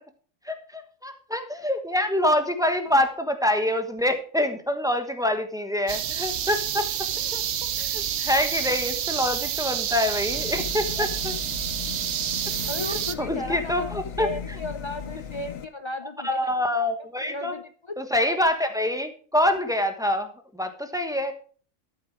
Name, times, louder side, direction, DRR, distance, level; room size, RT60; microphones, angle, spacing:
voice 1, 0.4-11.3 12.5-12.6 13.2-14.3 16.2-17.6 18.0-21.3, left 1 dB, 5° right, 6 dB, 1.1 m, -26 dB
sound 1, 5.9-13.1, right 10 dB, 60° right, 0.9 m, -29 dB
sound 2, 10.3-15.6, left 6 dB, 85° left, 1.3 m, -37 dB
voice 2, 12.7-16.5 16.8-16.9 17.2-18.0, left 2 dB, 50° left, 9 dB, 0.3 m, -35 dB
12.5 x 7.7 x 4.7 m, 0.43 s
omnidirectional pair, 1.4 m